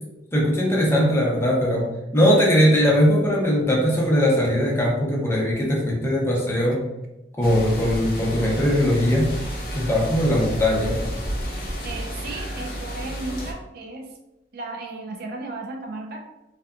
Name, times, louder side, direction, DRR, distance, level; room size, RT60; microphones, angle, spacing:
voice 1, 0.3-1.9 2.1-6.8 7.4-9.3 9.7-11.0, equal, 15° left, -3 dB, 0.6 m, -20 dB
sound 1, 7.4-13.5, equal, 55° left, 0.6 m, -31 dB
voice 2, 11.8-14.1 14.5-16.2, right 2 dB, 55° right, 2 dB, 0.4 m, -34 dB
2.7 x 2.2 x 2.3 m, 0.95 s
head